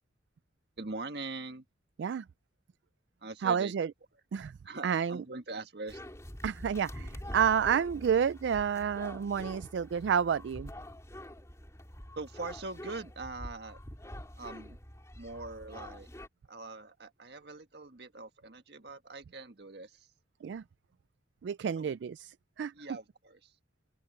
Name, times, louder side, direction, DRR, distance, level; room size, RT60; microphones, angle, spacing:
voice 1, 0.8-1.6 3.2-3.7 4.6-6.0 12.2-13.8 14.4-14.8 15.2-16.1 16.5-20.1 21.8-22.0 22.7-23.5, right 3 dB, 65° right, 1.6 m, -42 dB
voice 2, 3.4-3.9 4.3-4.5 4.8-5.2 6.4-10.7 20.4-20.6 21.4-22.7, right 7 dB, 80° right, 0.3 m, -30 dB
sound 1, 5.9-16.3, left 1 dB, 15° left, 3.2 m, -46 dB
open air
head